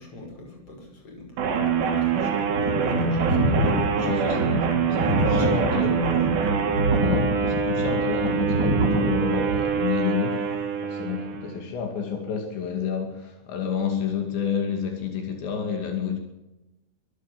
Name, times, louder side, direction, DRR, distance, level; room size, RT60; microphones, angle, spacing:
voice 1, 0.0-4.2 4.5-4.6 5.0-6.2, left 2 dB, 30° left, 3 dB, 7.1 m, -38 dB
sound 1, 1.4-11.6, right 6 dB, 75° right, 5.0 m, -25 dB
sound 2, 2.3-9.6, right 1 dB, 25° right, 4.5 m, -26 dB
voice 2, 3.0-3.4 4.0-6.0 7.0-16.2, left 7 dB, 80° left, 4 dB, 4.8 m, -30 dB
24.0 x 16.0 x 7.6 m, 0.98 s
omnidirectional pair, 5.1 m